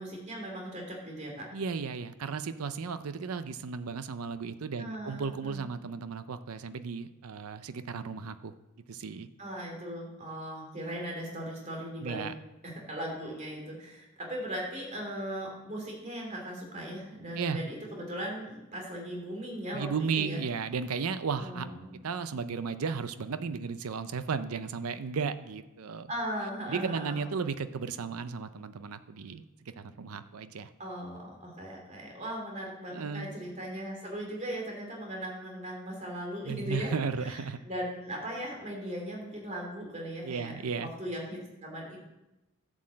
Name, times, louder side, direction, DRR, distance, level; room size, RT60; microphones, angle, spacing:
voice 1, 0.0-1.5 4.8-5.7 9.4-12.3 12.6-20.4 21.4-22.0 26.1-27.2 30.8-36.9 37.2-40.5 40.8-42.1, equal, 30° right, 0 dB, 3.0 m, -38 dB
voice 2, 1.5-8.5 8.9-9.3 12.0-12.3 17.4-17.6 19.7-21.7 22.0-26.1 26.7-29.4 29.8-30.7 32.9-33.3 36.4-37.6 40.2-40.9, right 5 dB, 85° right, 12 dB, 0.5 m, -34 dB
11.5 x 6.2 x 7.5 m, 0.98 s
head